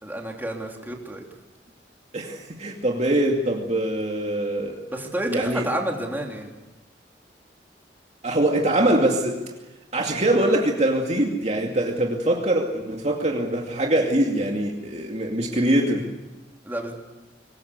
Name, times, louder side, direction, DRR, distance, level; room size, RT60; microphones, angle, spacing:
voice 1, 0.0-1.2 4.9-6.5 16.6-16.9, right 1 dB, 10° right, 0 dB, 3.6 m, -29 dB
voice 2, 2.1-4.8 5.3-5.7 8.2-9.4 9.9-16.1, right 1 dB, 40° right, 1 dB, 2.5 m, -23 dB
24.0 x 20.5 x 8.2 m, 1.1 s
head